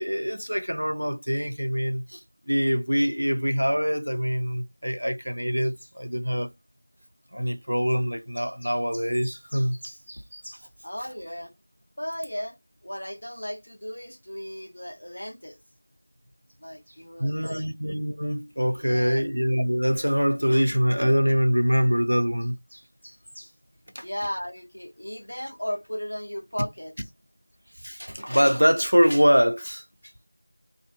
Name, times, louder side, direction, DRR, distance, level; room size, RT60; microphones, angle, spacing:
voice 1, 0.0-2.2 2.5-6.5 7.3-10.6 17.2-22.8 23.4-23.5 23.9-24.1 27.8-29.8, equal, 85° right, 0.6 m, -24 dB
voice 2, 10.8-11.5 12.0-12.6 12.8-15.6 16.6-17.7 18.8-19.2 24.0-26.9, equal, 30° left, 0.5 m, -35 dB
2.4 x 2.4 x 2.5 m
figure-of-eight pair, 180°, 0 cm